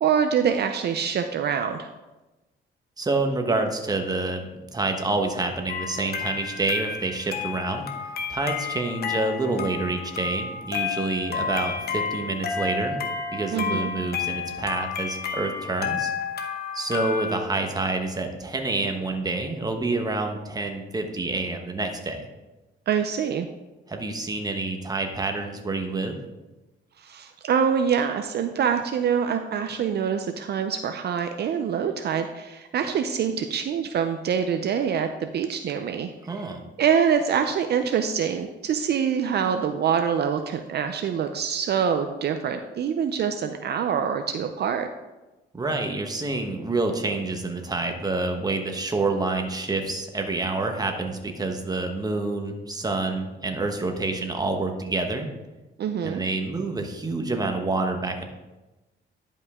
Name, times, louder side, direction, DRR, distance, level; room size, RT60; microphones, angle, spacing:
voice 1, 0.0-1.9 13.5-13.9 22.9-23.5 27.0-36.1 36.8-44.9 55.8-56.2, right 7 dB, 55° right, 7 dB, 0.5 m, -25 dB
voice 2, 3.0-7.9 8.3-13.0 13.3-16.1 16.7-22.3 23.9-26.2 36.3-36.6 45.5-55.3 56.0-58.2, right 3 dB, 20° right, 4 dB, 1.1 m, -28 dB
sound 1, 5.7-17.4, left 5 dB, 50° left, 0.9 m, -31 dB
10.5 x 5.4 x 3.6 m, 1.1 s
cardioid pair, 105°, 20 cm